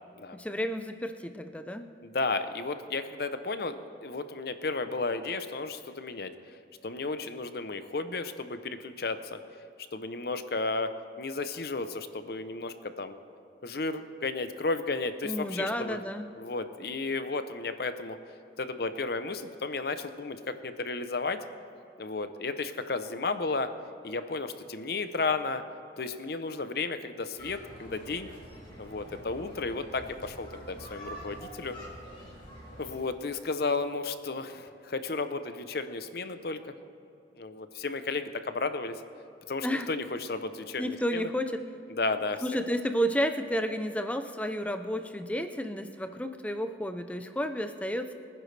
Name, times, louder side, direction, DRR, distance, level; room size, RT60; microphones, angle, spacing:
voice 1, 0.3-1.9 15.2-16.3 39.6-39.9 40.8-41.6 42.4-48.1, equal, 10° left, 8 dB, 0.6 m, -31 dB
voice 2, 2.0-6.3 6.8-9.4 9.9-13.2 13.6-16.0 16.4-18.2 18.6-21.4 22.0-23.7 24.0-25.6 26.0-28.3 28.8-31.8 32.8-36.7 37.4-39.0 39.5-41.3 41.9-42.4, left 3 dB, 60° left, 10 dB, 0.7 m, -33 dB
sound 1, 27.4-33.0, equal, 30° left, 3.3 m, -46 dB
23.5 x 10.0 x 3.3 m, 2.7 s
head